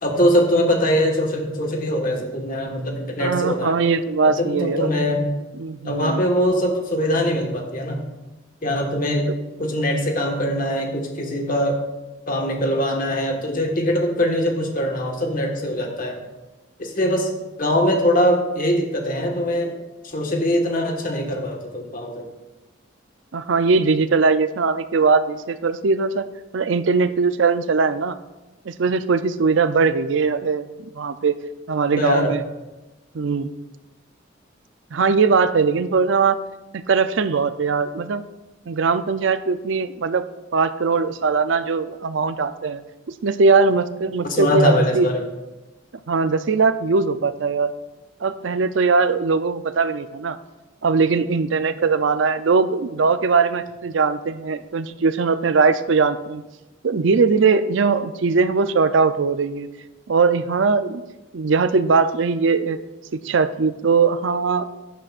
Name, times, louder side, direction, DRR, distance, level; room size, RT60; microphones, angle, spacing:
voice 1, 0.0-3.7 4.2-5.3 5.8-8.0 8.6-9.3 9.6-11.8 12.3-16.2 16.8-17.3 17.6-19.7 20.0-22.3 32.0-32.4 44.3-45.2, equal, 45° left, 2 dB, 1.5 m, -22 dB
voice 2, 3.2-4.9 5.5-6.2 23.3-26.3 26.5-28.2 28.7-31.4 31.7-32.4 33.1-33.5 34.9-36.4 36.7-38.2 38.7-40.2 40.5-42.8 43.2-45.1 46.1-47.7 48.2-50.4 50.8-56.4 56.8-59.7 60.1-61.0 61.3-62.8 63.1-64.7, right 4 dB, 70° right, 12 dB, 0.5 m, -20 dB
14.5 x 10.5 x 2.5 m, 1.1 s
head